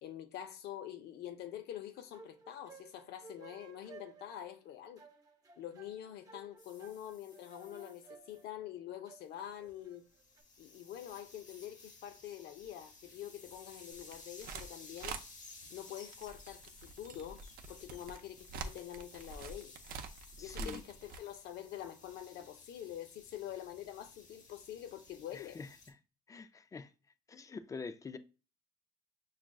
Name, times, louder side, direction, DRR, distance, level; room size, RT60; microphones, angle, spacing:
voice 1, 0.0-5.0 5.6-10.0 10.6-15.2 15.7-17.4 17.7-19.7 20.4-25.6, left 11 dB, 70° left, 0.6 m, -46 dB
sound 1, 1.9-10.4, right 4 dB, 20° right, 0.8 m, -57 dB
sound 2, 6.6-8.5 9.2-25.9, left 3 dB, 45° left, 1.0 m, -57 dB
sound 3, 13.9-14.7 15.0-15.2 16.1-21.2, right 4 dB, 60° right, 0.5 m, -45 dB
voice 2, 20.4-20.8 25.3-26.0 26.3-26.9 27.3-28.2, left 4 dB, 20° left, 0.3 m, -46 dB
5.9 x 2.4 x 2.3 m
cardioid pair, 110°, 17 cm